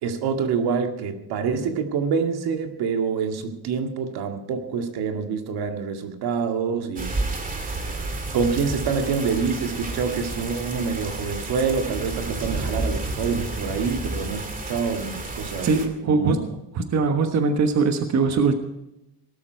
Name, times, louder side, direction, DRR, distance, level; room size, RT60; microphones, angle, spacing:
voice 1, 0.0-7.2 8.3-15.7 16.0-16.4, right 5 dB, 75° right, 5 dB, 2.1 m, -26 dB
sound 1, 7.0-15.9, right 2 dB, 20° right, 2.3 m, -31 dB
voice 2, 15.6-16.5 16.7-18.5, right 4 dB, 45° right, 6 dB, 1.3 m, -21 dB
18.5 x 12.5 x 4.6 m, 0.89 s
cardioid pair, 135°, 39 cm